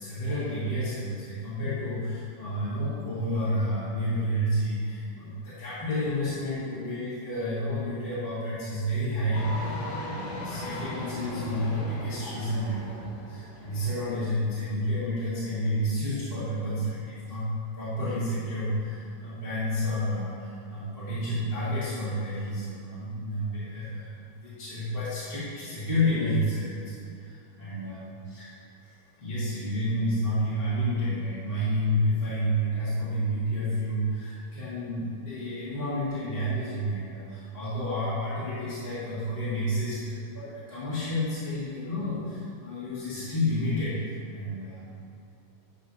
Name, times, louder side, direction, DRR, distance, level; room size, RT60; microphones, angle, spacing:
voice 1, 0.0-28.5 28.8-44.8, equal, 25° left, -13 dB, 1.6 m, -30 dB
sound 1, 9.3-14.6, left 1 dB, 65° left, 3.1 m, -37 dB
11.5 x 6.6 x 2.7 m, 2.4 s
omnidirectional pair, 3.8 m